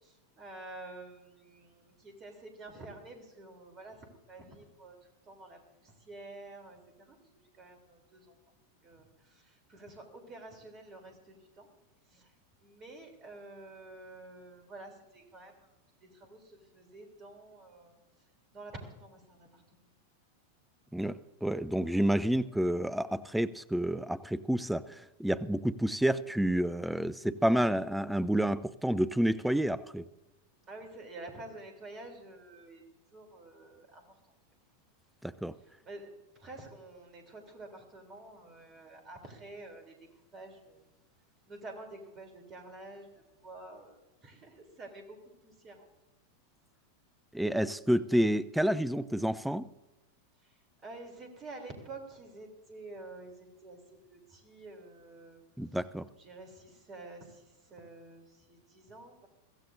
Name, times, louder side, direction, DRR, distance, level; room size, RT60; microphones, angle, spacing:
voice 1, 0.0-5.0 5.2-8.4 8.8-11.7 12.1-12.3 12.6-15.7 16.0-18.0 18.5-19.6 30.7-32.8 33.1-34.2 35.8-40.8 41.5-45.9 50.4-50.6 50.8-55.4 56.2-59.3, right 2 dB, 30° right, 5 dB, 3.2 m, -49 dB
voice 2, 20.9-30.1 35.2-35.5 47.3-49.7 55.6-56.1, right 1 dB, ahead, 16 dB, 0.4 m, -29 dB
23.0 x 15.0 x 2.6 m, 0.99 s
figure-of-eight pair, 90°, 0 cm